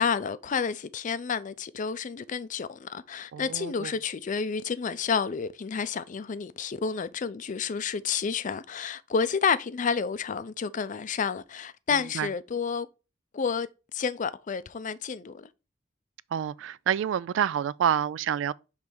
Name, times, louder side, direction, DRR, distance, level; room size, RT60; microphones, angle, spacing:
voice 1, 0.0-12.9 13.3-13.7 13.9-15.5, left 6 dB, 45° left, 0.4 m, -30 dB
voice 2, 3.3-3.9 12.1-12.3 16.3-18.5, right 9 dB, 80° right, 0.3 m, -28 dB
6.2 x 3.2 x 5.1 m
head